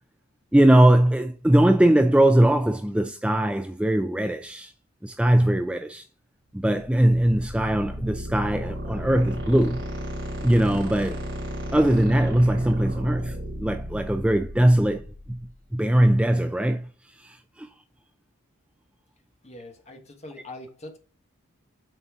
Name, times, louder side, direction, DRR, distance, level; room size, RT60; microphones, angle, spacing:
voice 1, 0.5-4.7 5.0-6.0 6.5-9.8 10.4-11.2 11.7-15.0 15.3-15.4 15.7-16.9 17.2-17.7, right 1 dB, 5° right, 0.3 m, -20 dB
sound 1, 6.6-15.5, equal, 60° right, 3.2 m, -34 dB
voice 2, 19.4-21.0, left 2 dB, 30° left, 1.2 m, -42 dB
7.5 x 4.2 x 3.5 m
head